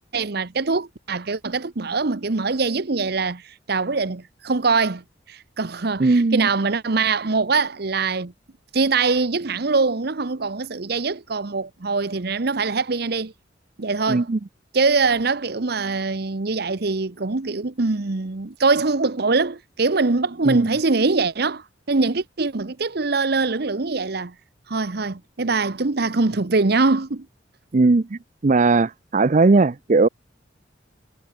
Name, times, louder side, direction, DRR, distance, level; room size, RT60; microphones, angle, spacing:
voice 1, 0.1-8.3 8.7-13.3 13.8-14.3 14.7-24.3 24.7-27.3, right 4 dB, 60° right, 0.9 m, -23 dB
voice 2, 6.0-6.5 14.1-14.4 20.5-20.7 27.7-30.1, right 3 dB, 40° right, 0.5 m, -18 dB
head